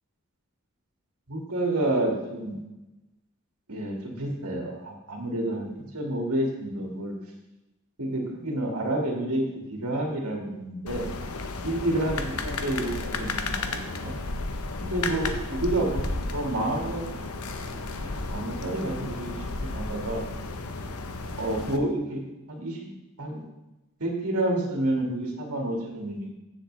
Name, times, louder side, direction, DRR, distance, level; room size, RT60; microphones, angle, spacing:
voice 1, 1.3-2.6 3.7-7.1 8.0-9.4 9.8-11.1 11.6-14.1 14.8-17.2 17.7-17.8 18.3-19.3 19.6-20.2 21.4-22.9 23.2-23.4 24.0-26.3, right 1 dB, 90° right, -1 dB, 2.1 m, -29 dB
sound 1, 10.9-21.8, left 3 dB, 90° left, 0.9 m, -33 dB
14.5 x 6.8 x 3.3 m, 0.99 s
head